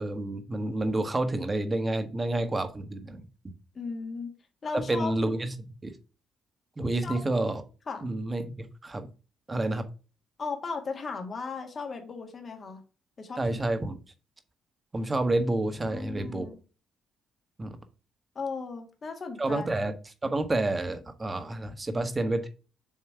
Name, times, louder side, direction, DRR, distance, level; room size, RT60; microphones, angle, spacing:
voice 1, 0.0-3.3 4.7-5.9 6.8-7.6 8.0-9.1 9.5-9.8 13.4-14.0 14.9-16.5 17.6-17.8 19.4-19.9 20.2-22.5, right 2 dB, 25° right, 9 dB, 1.2 m, -29 dB
voice 2, 3.7-4.3 4.6-5.1 7.0-7.2 7.9-8.1 10.4-12.8 13.2-13.6 15.8-16.6 18.3-19.7, left 4 dB, 40° left, 3 dB, 1.8 m, -36 dB
7.4 x 3.1 x 4.5 m, 0.35 s
cardioid pair, 90°, 0 cm